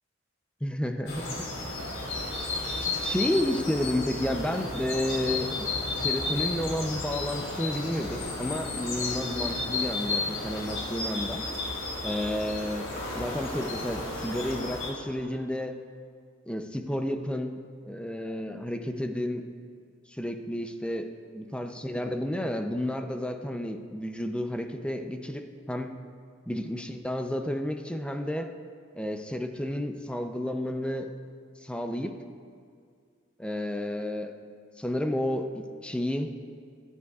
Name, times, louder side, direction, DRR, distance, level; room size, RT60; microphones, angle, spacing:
voice 1, 0.6-1.5 2.9-5.7 5.9-11.5 12.0-12.9 13.2-15.8 16.5-19.4 20.1-21.1 21.3-26.0 26.5-28.5 28.9-31.1 31.6-32.2 33.4-34.3 34.8-36.6, left 1 dB, 5° left, 5 dB, 0.5 m, -31 dB
sound 1, 1.1-14.9, left 3 dB, 85° left, 3.4 m, -33 dB
21.5 x 11.0 x 2.4 m, 2.2 s
head